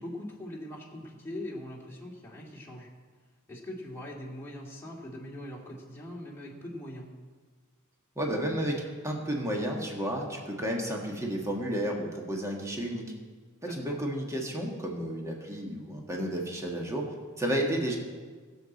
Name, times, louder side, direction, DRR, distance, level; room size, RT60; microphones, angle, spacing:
voice 1, 0.0-2.9 3.5-7.1 13.7-14.0, left 1 dB, 10° left, -4 dB, 2.3 m, -41 dB
voice 2, 8.1-13.0 13.6-17.1 17.4-18.0, right 1 dB, 15° right, 0 dB, 1.6 m, -32 dB
21.5 x 7.5 x 4.1 m, 1.5 s
head